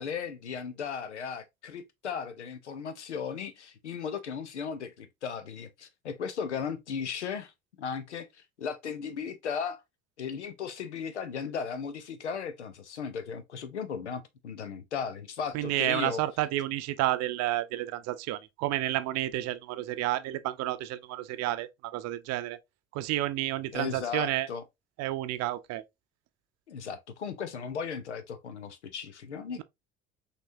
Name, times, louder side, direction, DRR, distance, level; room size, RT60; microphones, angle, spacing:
voice 1, 0.0-7.5 7.8-8.3 8.6-9.8 10.2-16.2 23.7-24.6 26.7-29.6, left 6 dB, 90° left, 0.6 m, -36 dB
voice 2, 15.5-22.6 22.9-24.5 25.0-25.8, right 15 dB, 50° right, 0.6 m, -30 dB
5.9 x 3.0 x 2.6 m
figure-of-eight pair, 60°, 33 cm